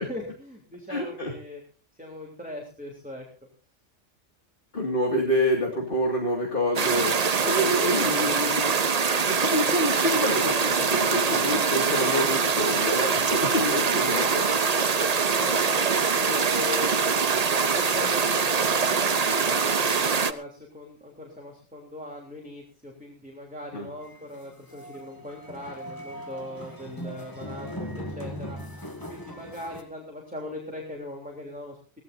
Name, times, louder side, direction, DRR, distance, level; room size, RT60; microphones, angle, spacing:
voice 1, 0.0-1.6 1.9-3.2 15.4-17.4 17.7-32.0, left 1 dB, 5° right, -1 dB, 3.4 m, -39 dB
voice 2, 0.9-1.3 4.7-7.1 7.4-8.8 9.3-14.5 23.7-23.9, left 1 dB, 50° left, 0 dB, 2.6 m, -27 dB
sound 1, 6.8-20.3, right 5 dB, 40° right, 0.8 m, -24 dB
sound 2, 24.0-29.8, equal, 15° left, 2.1 m, -39 dB
23.0 x 16.0 x 2.7 m, 0.36 s
omnidirectional pair, 1.2 m